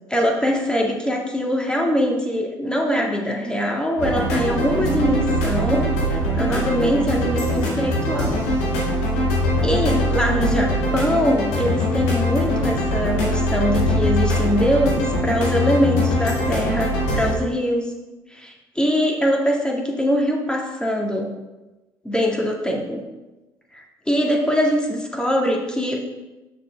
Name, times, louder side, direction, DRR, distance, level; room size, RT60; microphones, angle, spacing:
voice 1, 0.1-8.4 9.6-17.9 18.3-21.4 22.0-23.0 23.7-26.1, equal, 5° left, 0 dB, 1.7 m, -22 dB
sound 1, 4.0-17.4, left 1 dB, 75° left, 1.8 m, -22 dB
7.2 x 6.6 x 3.3 m, 1.1 s
hypercardioid pair, 55°, 12 cm